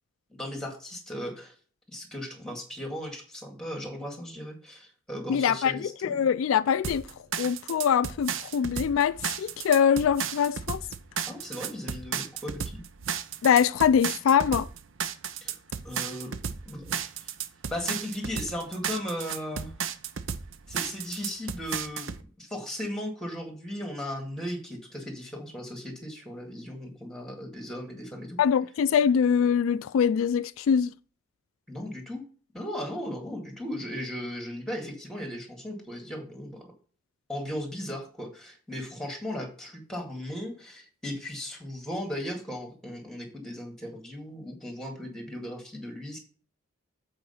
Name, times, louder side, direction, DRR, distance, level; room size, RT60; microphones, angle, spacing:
voice 1, 0.4-1.5 1.9-6.3 11.3-12.8 15.4-15.5 15.8-16.3 16.7-17.0 17.2-17.3 17.7-19.7 20.7-28.4 31.7-32.2 32.5-36.7 37.3-46.2, equal, 5° left, 2.0 m, -37 dB
voice 2, 5.3-7.1 7.4-10.8 13.4-14.7 28.4-30.9, left 7 dB, 75° left, 0.3 m, -23 dB
sound 1, 6.8-22.2, right 7 dB, 70° right, 0.6 m, -34 dB
7.8 x 4.7 x 5.5 m
head